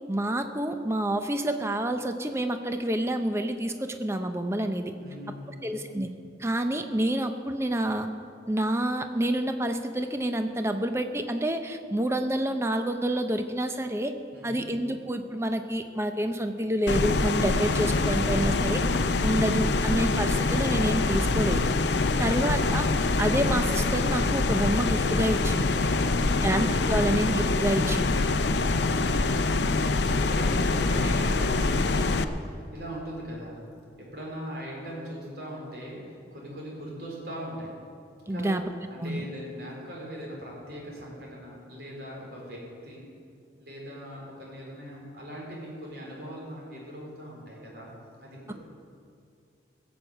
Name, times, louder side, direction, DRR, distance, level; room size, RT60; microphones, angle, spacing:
voice 1, 0.1-4.9 5.6-6.1 6.4-8.1 8.5-14.1 14.4-18.8 19.2-21.8 22.2-22.9 23.2-25.8 26.4-28.2 38.3-38.6 39.0-39.2, right 1 dB, 15° right, 7 dB, 0.7 m, -28 dB
voice 2, 5.0-5.8 14.3-14.7 17.5-18.6 22.0-22.5 26.0-27.0 29.0-33.6 34.0-37.7 38.3-38.6 38.9-43.0 43.6-47.9 48.2-48.5, equal, 60° right, -3 dB, 4.4 m, -40 dB
sound 1, 16.9-32.2, left 3 dB, 70° left, 0.6 m, -25 dB
17.0 x 7.3 x 8.0 m, 2.4 s
head